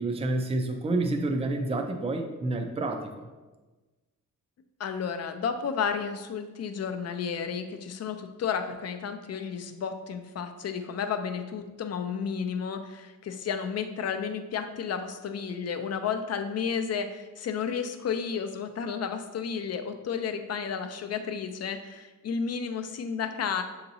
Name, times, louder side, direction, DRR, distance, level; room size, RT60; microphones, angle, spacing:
voice 1, 0.0-3.3, right 2 dB, 20° right, 4 dB, 0.4 m, -29 dB
voice 2, 4.8-23.6, left 6 dB, 50° left, 7 dB, 0.5 m, -32 dB
6.5 x 2.9 x 2.7 m, 1.2 s
cardioid pair, 105°, 34 cm